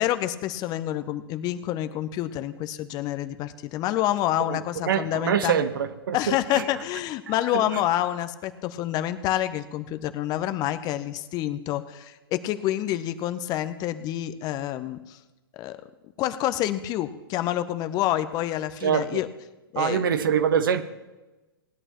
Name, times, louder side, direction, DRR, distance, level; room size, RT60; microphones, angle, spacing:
voice 1, 0.0-5.6 6.1-15.2 15.5-15.8 16.2-19.3 19.7-20.1, left 13 dB, 30° left, 0.7 m, -28 dB
voice 2, 4.9-6.6 18.8-19.2 19.8-20.8, right 8 dB, 65° right, 1.0 m, -24 dB
19.0 x 11.0 x 3.0 m
figure-of-eight pair, 105°, 12 cm